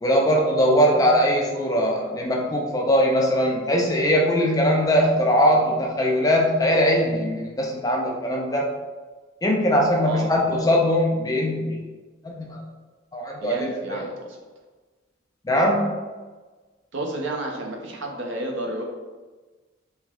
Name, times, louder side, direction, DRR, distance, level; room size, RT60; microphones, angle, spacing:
voice 1, 0.0-8.7 9.4-11.9 12.2-12.6 13.1-14.1 15.4-15.9, equal, 20° left, 0 dB, 0.3 m, -21 dB
voice 2, 13.4-14.4 16.9-18.8, right 1 dB, 65° right, 0 dB, 0.6 m, -31 dB
3.3 x 2.9 x 2.3 m, 1.3 s
head